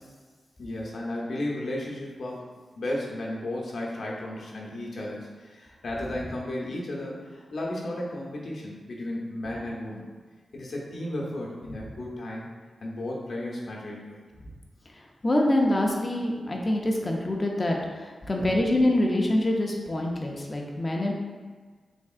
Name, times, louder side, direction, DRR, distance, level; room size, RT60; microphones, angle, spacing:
voice 1, 0.6-2.4 2.7-10.1 10.5-12.5 12.8-14.2 18.3-18.6, left 1 dB, 60° left, -3 dB, 0.7 m, -34 dB
voice 2, 15.2-21.1, left 1 dB, 25° left, 0 dB, 0.5 m, -25 dB
3.6 x 3.4 x 2.4 m, 1.5 s
wide cardioid pair, 145°, 0 cm